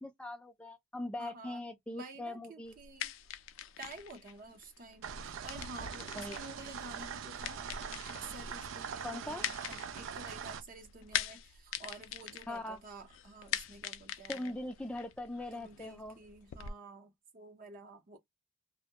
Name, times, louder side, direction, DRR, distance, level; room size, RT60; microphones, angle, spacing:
voice 1, 0.0-2.7 6.2-6.4 9.0-9.4 12.5-12.8 14.3-16.2, left 1 dB, 5° left, 0.3 m, -41 dB
voice 2, 1.2-1.6 1.9-3.1 3.8-7.8 8.1-14.6 15.5-18.2, right 3 dB, 45° right, 0.7 m, -50 dB
sound 1, 2.7-16.7, left 10 dB, 85° left, 0.3 m, -43 dB
sound 2, 5.0-10.6, right 7 dB, 85° right, 0.4 m, -42 dB
2.2 x 2.1 x 2.7 m
head